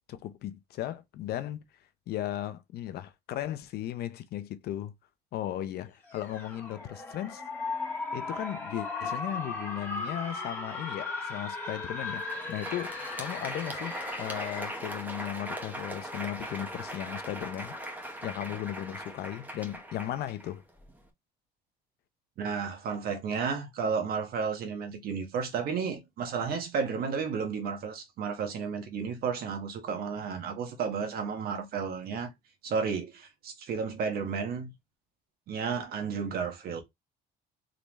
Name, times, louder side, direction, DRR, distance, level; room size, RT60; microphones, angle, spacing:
voice 1, 0.1-1.6 2.1-4.9 5.3-7.4 8.1-20.6, left 12 dB, 70° left, 0.7 m, -36 dB
sound 1, 6.1-14.9, left 3 dB, 10° left, 1.6 m, -37 dB
Crowd, 12.1-21.0, equal, 10° right, 1.1 m, -40 dB
voice 2, 22.4-32.3 32.6-34.7 35.5-36.8, right 6 dB, 65° right, 1.3 m, -32 dB
3.9 x 3.3 x 3.0 m
cardioid pair, 110°, 17 cm